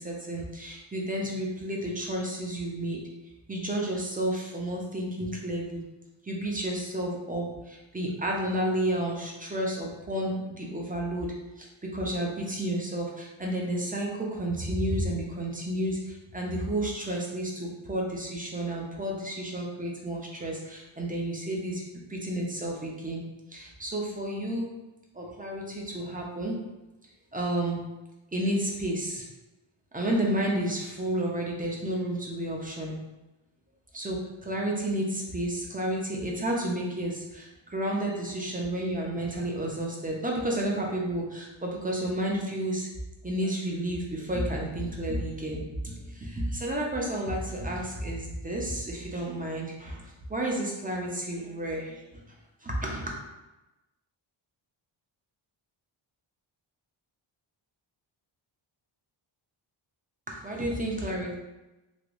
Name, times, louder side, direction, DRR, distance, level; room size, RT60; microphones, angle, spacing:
voice 1, 0.0-3.0 3.5-5.8 6.2-23.2 23.5-24.7 25.1-26.6 27.3-27.8 28.3-29.3 29.9-33.0 33.9-42.9 43.2-52.2 52.6-53.1 60.3-61.3, right 1 dB, 15° right, -2 dB, 0.6 m, -31 dB
3.4 x 2.7 x 2.5 m, 1.0 s
wide cardioid pair, 115°, 50 cm